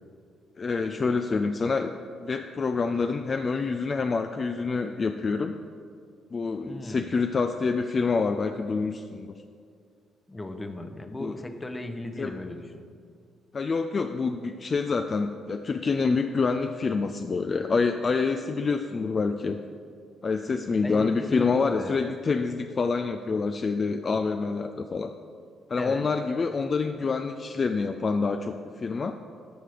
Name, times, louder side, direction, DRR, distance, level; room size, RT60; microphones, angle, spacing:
voice 1, 0.6-1.9 2.2-5.5 6.3-9.4 11.2-11.3 12.2-12.3 13.5-19.6 20.2-25.1 25.7-29.2, left 4 dB, 40° left, 6 dB, 0.4 m, -27 dB
voice 2, 6.7-7.1 10.3-12.8 20.8-22.0 25.8-26.1, left 1 dB, 20° left, 7 dB, 0.9 m, -36 dB
13.5 x 4.8 x 5.0 m, 2.2 s
supercardioid pair, 70°, 0 cm